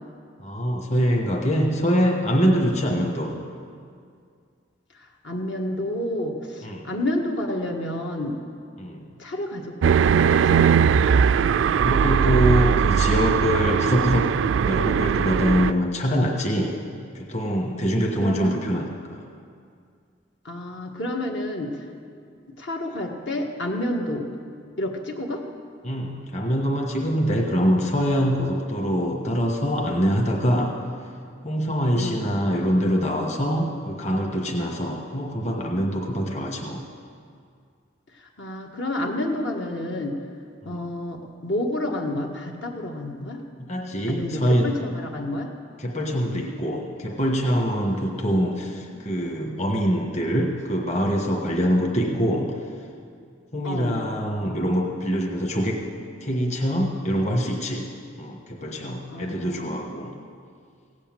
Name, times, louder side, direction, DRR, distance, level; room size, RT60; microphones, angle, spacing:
voice 1, 0.4-3.3 6.6-6.9 8.8-9.1 11.7-14.3 14.6-16.7 17.1-19.2 25.8-30.7 31.4-36.8 40.6-40.8 43.6-44.7 45.8-52.5 53.5-55.8 56.2-57.9 58.2-60.1, equal, 40° left, 1 dB, 1.4 m, -24 dB
voice 2, 4.9-8.4 9.2-10.6 18.2-18.5 20.4-21.8 22.6-24.3 24.8-25.4 31.9-32.3 38.1-40.1 40.6-43.4 44.1-45.5 48.1-48.4 48.9-49.0 53.6-54.0 59.1-60.1, left 1 dB, 70° left, 1 dB, 1.6 m, -30 dB
sound 1, 9.8-15.7, right 7 dB, 80° right, 0.3 m, -19 dB
16.5 x 8.3 x 9.0 m, 2.2 s
head